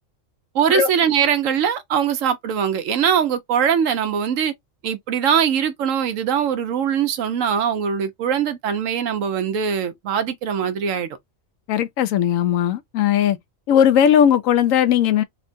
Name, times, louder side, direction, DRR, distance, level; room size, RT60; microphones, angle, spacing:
voice 1, 0.5-4.5 4.8-11.1, right 8 dB, 80° right, 1.1 m, -21 dB
voice 2, 11.7-13.4 13.7-15.2, left 9 dB, 85° left, 1.0 m, -17 dB
3.7 x 2.2 x 2.5 m
omnidirectional pair, 1.4 m